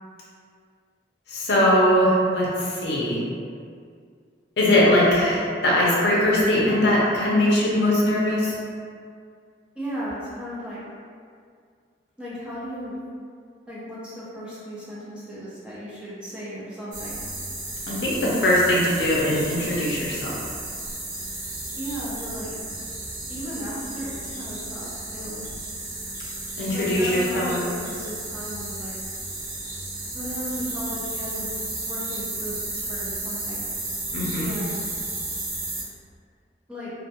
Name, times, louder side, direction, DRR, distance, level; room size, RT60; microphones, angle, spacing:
voice 1, 1.3-3.2 4.6-8.5 17.9-20.4 26.6-27.6 34.1-34.5, left 1 dB, 70° left, -5 dB, 0.5 m, -21 dB
voice 2, 9.8-10.8 12.2-13.0 13.7-17.2 21.8-22.5 23.3-25.4 26.7-28.9 30.1-31.5 31.9-33.7 34.4-34.9 36.7-36.9, equal, 5° right, -10 dB, 0.5 m, -35 dB
sound 1, 16.9-35.8, right 2 dB, 50° right, 0.6 m, -33 dB
2.1 x 2.1 x 2.8 m, 2.2 s
head